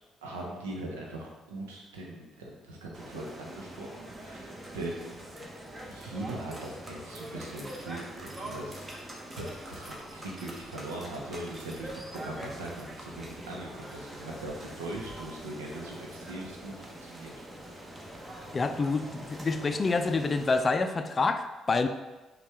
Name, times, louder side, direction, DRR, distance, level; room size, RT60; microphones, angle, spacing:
voice 1, 0.2-5.3 5.9-8.9 9.3-17.3, right 1 dB, 90° right, -1 dB, 0.7 m, -40 dB
sound 1, 2.9-20.6, right 1 dB, 25° right, 1.0 m, -44 dB
voice 2, 18.5-21.9, left 3 dB, 40° left, 9 dB, 0.3 m, -27 dB
5.3 x 2.3 x 3.4 m, 1.1 s
hypercardioid pair, 50°, 0 cm